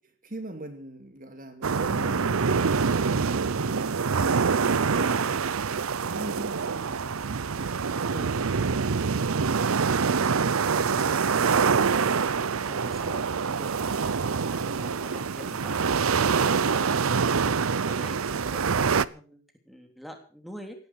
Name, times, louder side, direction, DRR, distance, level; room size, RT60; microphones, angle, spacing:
voice 1, 0.2-7.1, right 1 dB, 40° right, 2.5 m, -42 dB
sound 1, 1.6-19.1, right 5 dB, 85° right, 0.7 m, -25 dB
voice 2, 12.2-20.8, equal, ahead, 3.3 m, -45 dB
17.5 x 11.5 x 6.4 m
head